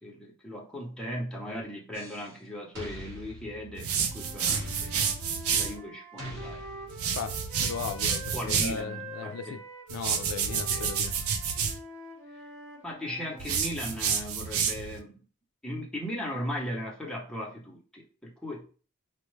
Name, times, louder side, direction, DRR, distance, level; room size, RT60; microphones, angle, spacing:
voice 1, 0.0-5.1 5.5-6.6 8.3-9.6 10.7-11.0 12.8-15.2 15.6-18.7, equal, 5° left, 0.8 m, -37 dB
sound 1, 1.9-2.4 2.8-4.0 4.5-5.6 6.2-7.2, left 1 dB, 60° right, 1.9 m, -43 dB
sound 2, 3.8-5.8 6.9-8.8 9.9-11.8 13.4-15.0, right 7 dB, 80° right, 0.5 m, -29 dB
Wind instrument woodwind instrument, 4.0-8.4 8.7-13.5, right 2 dB, 35° right, 1.0 m, -45 dB
voice 2, 7.1-9.6 9.9-11.2, left 6 dB, 90° left, 0.3 m, -37 dB
4.3 x 2.2 x 3.1 m
head